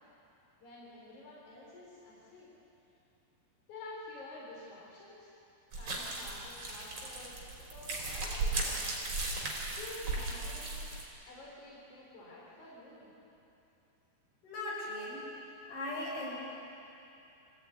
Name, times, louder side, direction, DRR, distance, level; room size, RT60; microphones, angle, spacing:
voice 1, 0.6-2.5 3.7-5.3 5.8-7.4 7.7-8.9 9.8-13.1, left 2 dB, 50° left, -6 dB, 5.6 m, -50 dB
sound 1, 5.7-11.0, right 2 dB, 40° right, 5.0 m, -36 dB
voice 2, 14.4-15.2 15.7-16.4, left 2 dB, 70° left, -5 dB, 7.9 m, -38 dB
25.0 x 16.0 x 9.4 m, 2.8 s
omnidirectional pair, 4.6 m